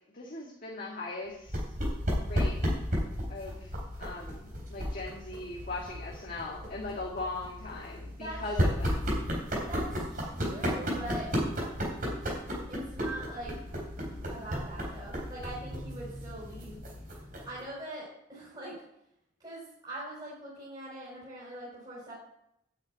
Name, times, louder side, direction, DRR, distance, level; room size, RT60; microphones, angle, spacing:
voice 1, 0.1-1.6 2.2-2.6 3.3-3.7 4.0-9.1, left 2 dB, 50° left, -4 dB, 1.9 m, -39 dB
sound 1, 1.5-17.6, equal, 50° right, 3.8 m, -34 dB
voice 2, 9.5-11.3 12.7-13.5 14.3-16.8 17.4-18.7 19.4-22.1, right 1 dB, 25° right, -7 dB, 4.7 m, -42 dB
9.2 x 6.5 x 8.7 m, 0.79 s
head